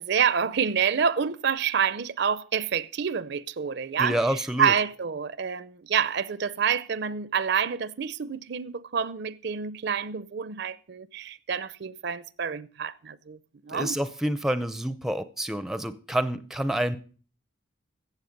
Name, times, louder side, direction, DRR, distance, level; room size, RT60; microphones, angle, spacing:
voice 1, 0.0-13.4 13.6-14.0, right 7 dB, 55° right, 0.5 m, -28 dB
voice 2, 4.0-4.7 13.7-17.0, right 1 dB, ahead, 0.5 m, -28 dB
14.5 x 8.0 x 5.2 m
head